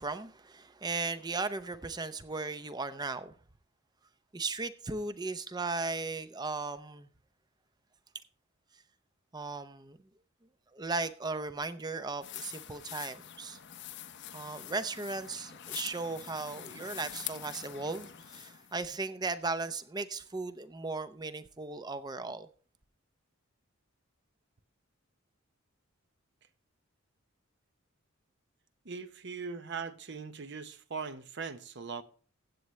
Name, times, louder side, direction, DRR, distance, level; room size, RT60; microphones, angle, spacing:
voice 1, 0.0-3.3 4.3-7.1 9.3-10.0 10.7-13.6 14.3-22.5, right 3 dB, 20° right, 0.6 m, -36 dB
sound 1, 12.2-18.8, left 11 dB, 55° left, 0.7 m, -45 dB
voice 2, 28.8-32.0, right 5 dB, 55° right, 0.9 m, -40 dB
15.5 x 8.3 x 3.2 m
head